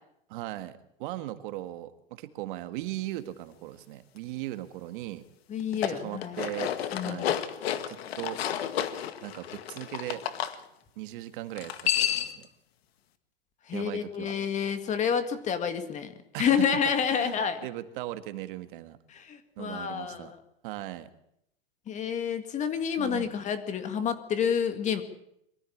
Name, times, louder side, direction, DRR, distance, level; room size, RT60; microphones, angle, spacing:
voice 1, 0.3-5.2 5.9-6.7 7.0-7.4 7.9-8.4 9.2-10.3 11.0-12.4 13.7-14.3 16.3-16.7 17.1-19.0 19.6-20.3 20.6-21.1 23.0-23.3, right 15 dB, 55° right, 11 dB, 1.7 m, -38 dB
voice 2, 5.5-6.4 6.9-7.3 13.7-16.1 16.4-17.6 19.1-20.4 21.9-25.0, left 7 dB, 25° left, 10 dB, 1.9 m, -29 dB
sound 1, 5.6-10.5 11.5-12.4, left 10 dB, 85° left, 1.9 m, -31 dB
23.0 x 14.0 x 8.6 m, 0.77 s
supercardioid pair, 155°, 30 cm